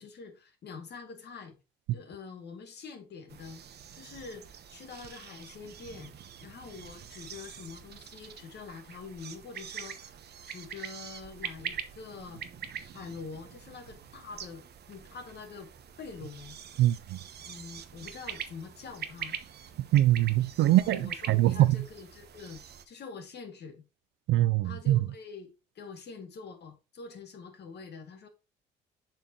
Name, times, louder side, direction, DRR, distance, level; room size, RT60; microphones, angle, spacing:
voice 1, 0.0-1.6 1.9-3.6 3.9-6.1 6.4-10.2 10.5-12.4 12.9-15.7 16.0-16.6 17.5-19.4 20.6-22.6 22.9-23.8 24.6-28.3, left 5 dB, 55° left, 2.2 m, -45 dB
sound 1, 3.3-22.8, right 8 dB, 55° right, 1.0 m, -44 dB
voice 2, 16.8-17.2 19.9-21.8 24.3-25.0, right 14 dB, 70° right, 0.5 m, -23 dB
7.3 x 5.4 x 2.9 m
supercardioid pair, 65°, 21 cm